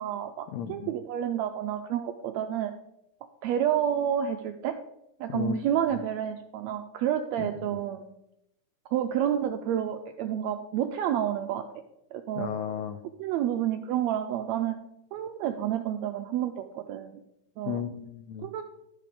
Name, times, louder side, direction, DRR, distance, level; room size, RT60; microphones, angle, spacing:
voice 1, 0.0-2.7 3.4-4.8 5.2-8.0 8.9-11.6 12.1-12.5 13.2-14.8 15.1-17.2 17.6-17.8 18.4-18.6, right 10 dB, 90° right, 6 dB, 1.6 m, -29 dB
voice 2, 0.5-0.9 5.3-5.6 7.4-7.7 12.4-13.0 17.7-18.5, left 9 dB, 85° left, 9 dB, 1.5 m, -34 dB
12.5 x 5.0 x 5.0 m, 0.83 s
omnidirectional pair, 3.7 m